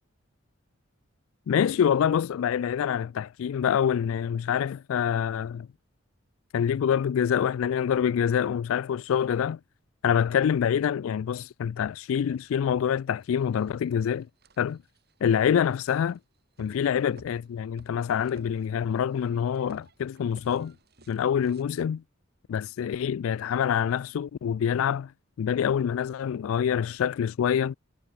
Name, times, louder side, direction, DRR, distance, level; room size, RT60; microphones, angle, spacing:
voice 1, 1.5-5.7 6.5-9.6 10.0-14.3 14.6-14.8 15.2-16.2 16.6-20.7 21.1-22.0 22.5-25.1 25.4-27.7, left 8 dB, 75° left, 0.3 m, -26 dB
sound 1, 12.4-12.5 13.0-21.6, right 1 dB, 45° right, 6.7 m, -58 dB
head